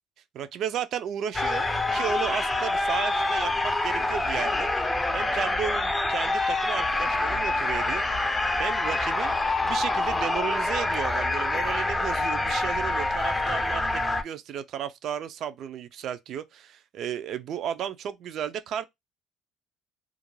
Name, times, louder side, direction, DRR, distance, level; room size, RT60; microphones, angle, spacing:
voice 1, 0.3-4.7 5.1-8.1 8.6-9.3 9.6-18.8, right 9 dB, 55° right, 0.4 m, -34 dB
sound 1, 1.3-14.2, left 2 dB, 15° left, 0.4 m, -26 dB
2.4 x 2.2 x 3.0 m
cardioid pair, 120°, 0 cm